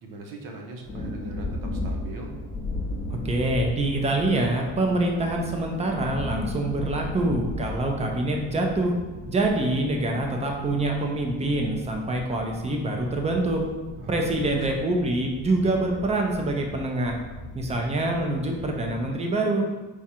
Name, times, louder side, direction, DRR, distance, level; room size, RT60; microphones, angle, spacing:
voice 1, 0.0-2.3 14.0-14.5, right 2 dB, 55° right, 1 dB, 0.8 m, -41 dB
sound 1, 0.8-19.1, left 2 dB, 25° left, 0.8 m, -37 dB
voice 2, 3.2-9.0 9.3-13.6 14.1-17.2 17.5-19.6, right 2 dB, 20° right, 2 dB, 0.5 m, -25 dB
4.8 x 2.4 x 4.2 m, 1.2 s
cardioid pair, 155°, 38 cm